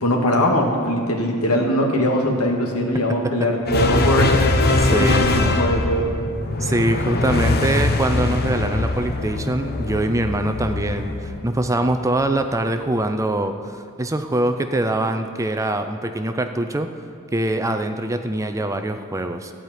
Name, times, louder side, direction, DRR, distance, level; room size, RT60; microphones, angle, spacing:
voice 1, 0.0-4.4 4.9-6.2, equal, 75° left, 1 dB, 1.8 m, -21 dB
voice 2, 2.9-3.5 4.8-5.3 6.6-16.9 17.3-19.5, right 1 dB, 15° right, 7 dB, 0.5 m, -23 dB
sound 1, 3.7-12.2, left 2 dB, 45° left, 0.8 m, -22 dB
15.0 x 5.0 x 9.2 m, 2.3 s
head